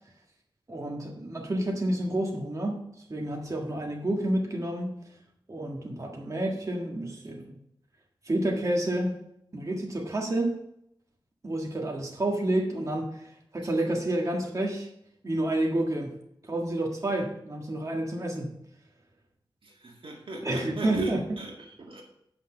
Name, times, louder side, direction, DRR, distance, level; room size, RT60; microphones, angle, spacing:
voice 1, 0.7-4.9 5.5-7.6 8.2-9.1 9.5-10.5 11.4-13.3 13.5-14.9 15.2-16.1 16.4-18.5 20.4-21.4, right 1 dB, 35° right, 0 dB, 1.6 m, -29 dB
voice 2, 19.6-21.5 21.8-22.0, right 2 dB, 75° right, 1 dB, 1.8 m, -36 dB
8.8 x 5.9 x 5.9 m, 0.75 s
wide cardioid pair, 90°, 9 cm